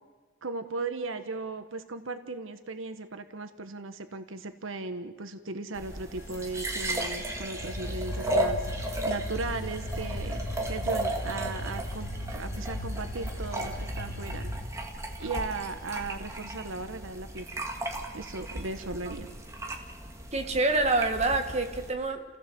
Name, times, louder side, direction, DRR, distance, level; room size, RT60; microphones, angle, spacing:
voice 1, 0.4-14.5 15.2-17.5 18.1-19.3, right 3 dB, 70° right, 9 dB, 1.2 m, -37 dB
sound 1, 5.7-21.9, right 1 dB, 15° right, 2.0 m, -35 dB
sound 2, 6.2-14.7, left 1 dB, 60° left, 2.6 m, -37 dB
voice 2, 20.3-22.2, right 2 dB, 30° right, 5 dB, 1.9 m, -26 dB
30.0 x 16.0 x 7.6 m, 1.4 s
head